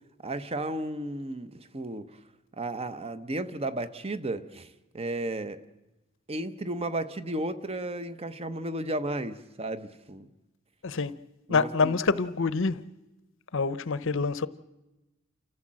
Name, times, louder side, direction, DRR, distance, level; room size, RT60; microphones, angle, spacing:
voice 1, 0.2-2.1 2.6-4.7 4.9-5.6 6.3-10.3 11.5-12.0, right 1 dB, 30° right, 0.9 m, -33 dB
voice 2, 11.5-12.8 13.5-14.5, left 4 dB, 65° left, 0.8 m, -26 dB
29.0 x 14.5 x 7.6 m
head